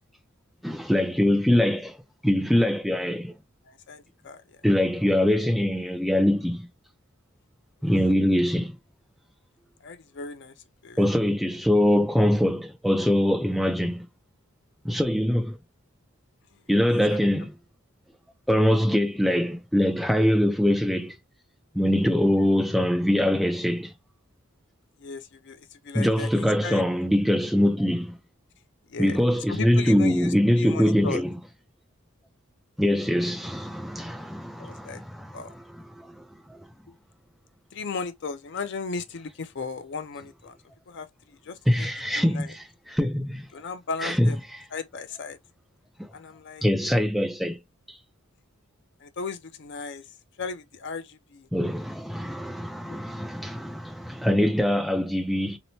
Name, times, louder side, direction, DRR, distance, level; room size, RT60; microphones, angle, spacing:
voice 1, 0.6-2.0 2.2-3.3 4.6-6.7 7.8-8.8 11.0-14.1 14.8-15.6 16.7-17.5 18.5-21.2 21.7-23.9 25.9-28.1 29.0-31.3 32.8-35.3 35.9-36.2 36.5-36.6 41.7-43.5 44.0-44.3 46.6-47.6 51.5-55.6, equal, ahead, 0.3 m, -23 dB
voice 2, 3.7-4.6 9.8-10.5 10.8-11.1 16.5-16.6 16.9-17.2 25.0-26.9 28.9-29.2 29.5-31.2 34.6-35.0 35.3-35.5 37.7-40.6 40.9-41.9 42.1-42.6 43.5-44.4 44.7-45.4 46.1-46.6 49.0-51.5 52.9-53.0, left 4 dB, 60° left, 0.5 m, -36 dB
2.9 x 2.1 x 2.7 m
head